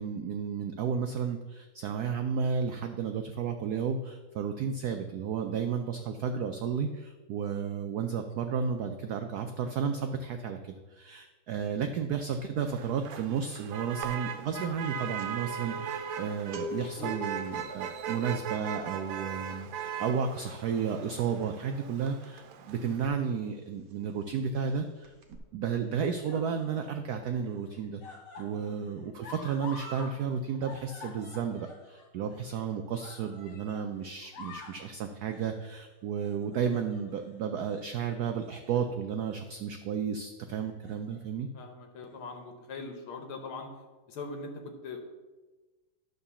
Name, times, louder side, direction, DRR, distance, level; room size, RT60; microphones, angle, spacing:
voice 1, 0.0-28.0 28.4-41.5, right 6 dB, 90° right, 6 dB, 0.8 m, -33 dB
Motor vehicle (road), 12.6-23.1, right 7 dB, 70° right, 1.4 m, -39 dB
sound 1, 14.8-23.1 23.4-23.6 23.9-24.7 25.0-25.4, left 2 dB, 50° right, 1.4 m, -45 dB
sound 2, 24.3-24.8 25.7-27.0 27.4-30.1 30.4-33.9 34.2-34.8 35.3-35.6 36.2-37.2 37.6-37.8 38.4-38.9 39.3-39.5 40.6-41.2 42.1-42.2, left 3 dB, 55° left, 2.2 m, -48 dB
voice 2, 28.4-28.7 41.5-43.7 44.1-45.0, left 3 dB, 80° left, 4 dB, 1.8 m, -42 dB
11.0 x 4.0 x 6.9 m, 1.2 s
omnidirectional pair, 2.3 m